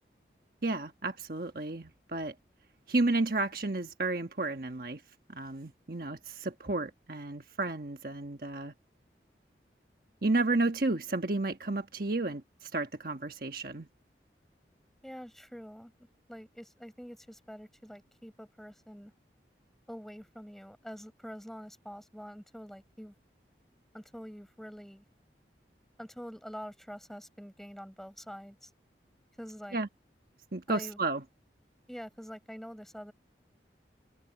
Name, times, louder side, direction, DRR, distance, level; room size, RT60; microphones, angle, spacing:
voice 1, 0.6-2.3 2.9-5.0 5.3-8.7 10.2-13.9 29.7-29.9 30.5-31.2, right 2 dB, 55° right, 1.3 m, -32 dB
voice 2, 15.0-19.1 19.9-23.1 23.9-25.0 26.0-28.7 29.4-29.8 30.7-31.0 31.9-33.1, equal, ahead, 5.5 m, -46 dB
head